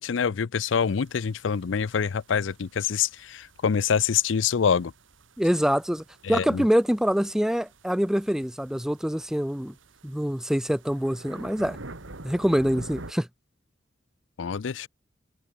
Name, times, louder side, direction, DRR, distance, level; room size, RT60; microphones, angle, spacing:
voice 1, 0.0-4.9 6.2-6.6 14.4-14.9, left 7 dB, 75° left, 0.5 m, -26 dB
sound 1, 0.7-13.1, right 2 dB, 85° right, 2.2 m, -48 dB
voice 2, 5.4-9.7 10.0-11.8 12.2-13.3, equal, 5° right, 0.5 m, -25 dB
head